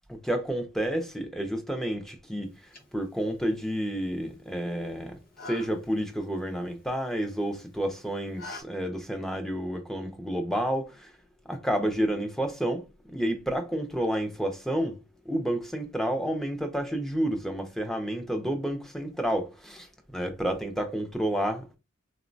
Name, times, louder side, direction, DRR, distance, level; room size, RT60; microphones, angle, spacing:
voice 1, 0.1-2.5 2.9-5.2 5.5-10.9 11.5-15.0 15.3-19.9 20.1-21.8, right 1 dB, ahead, 0.4 m, -30 dB
sound 1, 2.4-8.6, left 3 dB, 45° left, 0.7 m, -49 dB
3.7 x 2.1 x 2.5 m
head